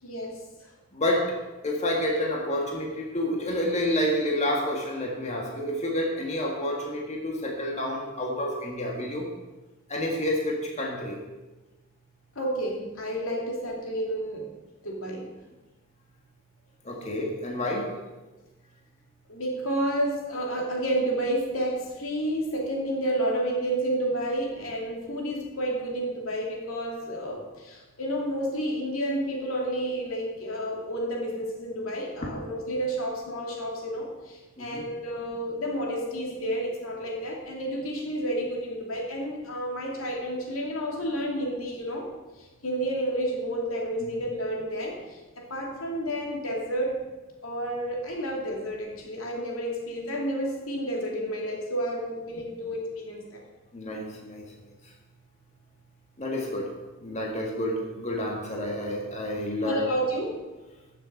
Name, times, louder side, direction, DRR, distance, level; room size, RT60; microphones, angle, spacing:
voice 1, 0.0-0.7 12.4-14.5 14.8-15.3 19.3-42.1 42.4-47.1 47.4-53.4 59.6-60.4, right 1 dB, 80° left, 0 dB, 2.6 m, -30 dB
voice 2, 0.9-1.4 1.6-9.3 9.9-11.2 16.8-17.9 34.6-34.8 44.0-44.1 53.7-54.5 56.2-56.7 57.0-59.8, left 1 dB, 35° left, -1 dB, 1.9 m, -29 dB
14.0 x 7.0 x 5.5 m, 1.1 s
head